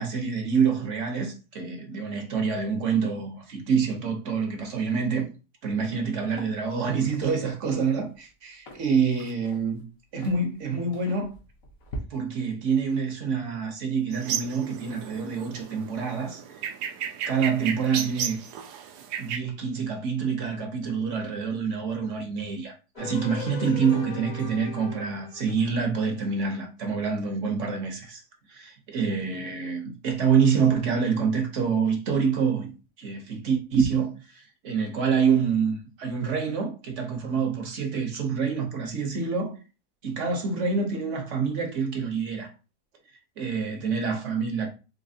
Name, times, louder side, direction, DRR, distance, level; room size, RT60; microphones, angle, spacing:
voice 1, 0.0-5.3 5.6-9.8 10.1-11.3 12.1-16.6 17.3-18.4 19.2-28.2 28.5-32.7 33.0-39.6 40.0-42.5 43.4-44.7, right 5 dB, 55° right, 1.0 m, -27 dB
sound 1, 5.8-6.0 6.3-12.0, right 1 dB, 60° left, 1.2 m, -44 dB
sound 2, 14.1-19.4, right 8 dB, 80° right, 1.1 m, -34 dB
sound 3, 23.0-26.2, left 4 dB, 80° left, 1.4 m, -40 dB
4.1 x 2.9 x 2.7 m
omnidirectional pair, 1.7 m